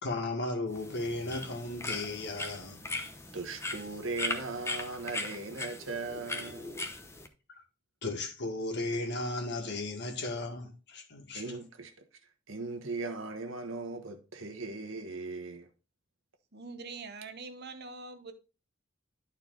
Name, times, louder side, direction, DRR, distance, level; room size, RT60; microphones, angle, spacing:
voice 1, 0.0-2.8 6.1-6.2 8.0-11.6, left 2 dB, 60° left, 1.9 m, -35 dB
sound 1, 0.7-7.3, left 2 dB, 15° left, 0.9 m, -39 dB
voice 2, 3.3-6.8 11.3-11.9 12.5-15.7, right 3 dB, 75° right, 1.3 m, -38 dB
voice 3, 16.5-18.3, right 4 dB, 55° right, 1.1 m, -44 dB
11.5 x 4.4 x 3.9 m
head